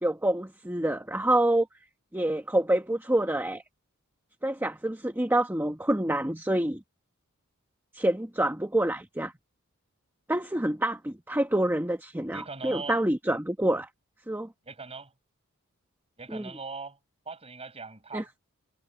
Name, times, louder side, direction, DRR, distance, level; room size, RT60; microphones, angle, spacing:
voice 1, 0.0-1.7 2.1-3.6 4.4-6.8 7.9-9.3 10.3-13.9 14.3-14.5 16.3-16.5 18.1-18.2, right 1 dB, 10° right, 1.2 m, -27 dB
voice 2, 12.3-13.0 14.6-15.1 16.2-17.0 17.3-18.3, right 4 dB, 30° right, 5.7 m, -40 dB
head